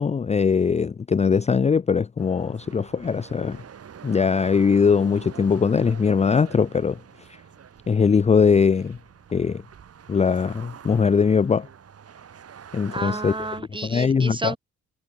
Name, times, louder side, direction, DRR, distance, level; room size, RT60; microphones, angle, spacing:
voice 1, 0.0-3.6 4.0-7.0 7.9-9.0 9.3-9.6 10.1-11.7 12.7-13.3 13.8-14.5, left 6 dB, 20° left, 0.5 m, -21 dB
sound 1, 2.2-13.6, right 8 dB, 50° right, 6.1 m, -45 dB
voice 2, 12.9-14.6, right 2 dB, 15° right, 2.2 m, -31 dB
cardioid pair, 90°, 30 cm